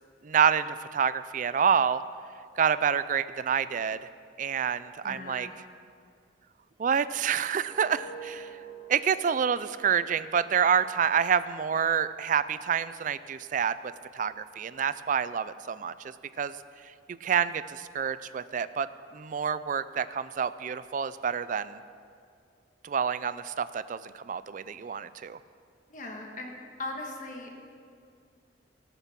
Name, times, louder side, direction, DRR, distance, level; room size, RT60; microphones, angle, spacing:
voice 1, 0.2-2.0 2.6-4.0 4.4-5.5 6.8-8.6 8.9-13.7 14.1-16.6 17.1-18.9 19.1-21.8 22.8-25.4, right 7 dB, 45° right, 15 dB, 0.3 m, -28 dB
voice 2, 5.0-5.6 25.9-26.5 26.8-27.5, left 2 dB, 45° left, 1 dB, 1.5 m, -38 dB
sound 1, 6.8-11.8 12.2-12.5, right 4 dB, 15° left, 2.6 m, -48 dB
17.5 x 6.9 x 5.9 m, 2.3 s
head